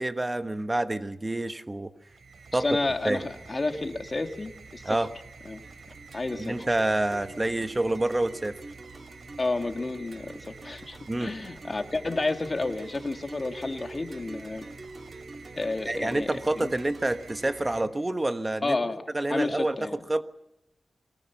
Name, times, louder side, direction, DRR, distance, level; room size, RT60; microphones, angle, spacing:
voice 1, 0.0-1.9 2.5-2.7 3.0-3.2 4.8-5.1 6.4-8.6 11.1-11.3 15.9-18.8 19.1-19.8 20.1-20.2, right 2 dB, 25° right, 9 dB, 1.3 m, -27 dB
sound 1, 2.0-18.5, right 4 dB, 75° right, 3.2 m, -48 dB
voice 2, 2.5-5.0 5.5-5.6 6.1-6.6 9.4-14.7 15.5-16.7 18.6-20.0, left 2 dB, 45° left, 6 dB, 2.0 m, -31 dB
sound 2, 5.6-17.6, right 2 dB, 50° right, 2.7 m, -46 dB
23.0 x 19.5 x 7.2 m, 0.88 s
cardioid pair, 50°, 0 cm